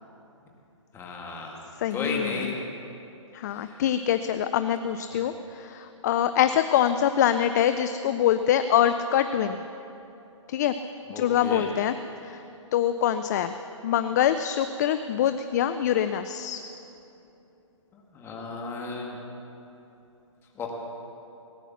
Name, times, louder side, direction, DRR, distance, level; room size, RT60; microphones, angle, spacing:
voice 1, 0.9-1.6 1.9-2.6 3.5-3.8 5.1-5.2 11.1-11.7 17.9-19.2 20.6-20.7, left 4 dB, 15° left, -1 dB, 2.0 m, -34 dB
voice 2, 1.8-2.5 3.3-9.6 10.5-10.7 11.2-11.9 12.2-12.4 12.7-13.5 13.8-16.6, left 10 dB, 35° left, 10 dB, 0.4 m, -24 dB
18.0 x 9.8 x 7.1 m, 2.9 s
hypercardioid pair, 145°, 17 cm